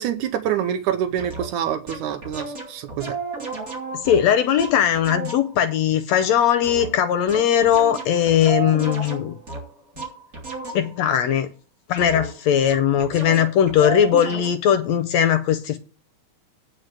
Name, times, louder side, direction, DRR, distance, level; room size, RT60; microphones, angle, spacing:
voice 1, 0.0-3.2, right 10 dB, 80° right, 2.2 m, -26 dB
sound 1, 1.2-1.5 1.9-5.6 6.6-11.1 12.0-12.4 12.7-14.5, right 4 dB, 30° right, 2.7 m, -33 dB
voice 2, 4.0-9.3 10.7-11.5 11.9-15.8, left 9 dB, 75° left, 1.8 m, -19 dB
9.4 x 5.1 x 7.6 m
omnidirectional pair, 3.5 m